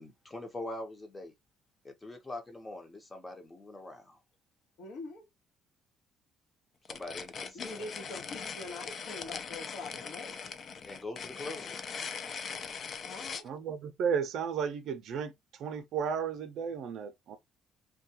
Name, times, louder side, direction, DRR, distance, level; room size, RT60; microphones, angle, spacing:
voice 1, 0.0-1.3 1.8-4.2 6.9-7.9 10.8-11.8, left 2 dB, 15° left, 0.7 m, -43 dB
voice 2, 4.8-5.2 7.5-10.4 13.0-13.4, left 2 dB, 70° left, 1.0 m, -43 dB
sound 1, 6.9-13.5, left 6 dB, 45° left, 0.3 m, -41 dB
voice 3, 13.4-15.3 15.6-17.4, right 7 dB, 65° right, 0.4 m, -33 dB
2.3 x 2.2 x 2.7 m
cardioid pair, 125°, 0 cm